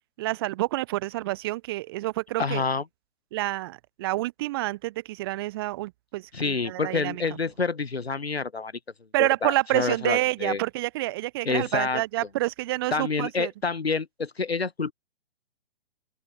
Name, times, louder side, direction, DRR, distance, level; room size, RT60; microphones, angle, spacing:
voice 1, 0.2-2.6 3.3-7.2 9.1-13.5, right 18 dB, 25° right, 0.6 m, -28 dB
voice 2, 2.4-2.8 6.3-8.7 9.2-10.6 11.4-12.0 12.9-14.9, left 4 dB, 85° left, 1.4 m, -28 dB
open air
figure-of-eight pair, 125°, 30 cm